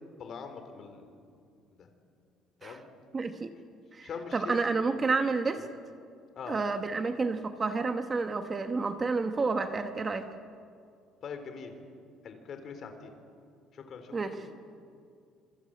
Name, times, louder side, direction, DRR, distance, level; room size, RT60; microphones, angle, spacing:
voice 1, 0.2-1.2 1.8-1.9 2.6-2.8 4.0-4.6 6.4-6.6 11.2-11.8 12.2-13.1 13.7-14.6, left 6 dB, 40° left, 7 dB, 3.5 m, -42 dB
voice 2, 3.1-3.5 3.9-5.7 6.5-10.3 14.1-14.5, right 4 dB, 20° right, 7 dB, 1.1 m, -30 dB
26.0 x 26.0 x 8.7 m, 2.3 s
cardioid pair, 165°, 0 cm